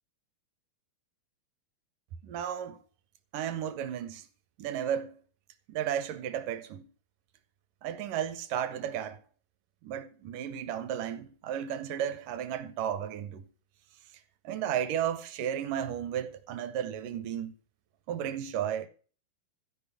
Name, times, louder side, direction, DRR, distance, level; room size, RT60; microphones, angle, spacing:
voice 1, 2.2-2.8 3.3-4.3 4.6-5.2 5.7-6.8 7.8-9.2 9.8-13.4 14.4-17.5 18.1-18.9, right 9 dB, 75° right, 2.1 m, -33 dB
14.5 x 5.3 x 8.3 m
omnidirectional pair, 4.6 m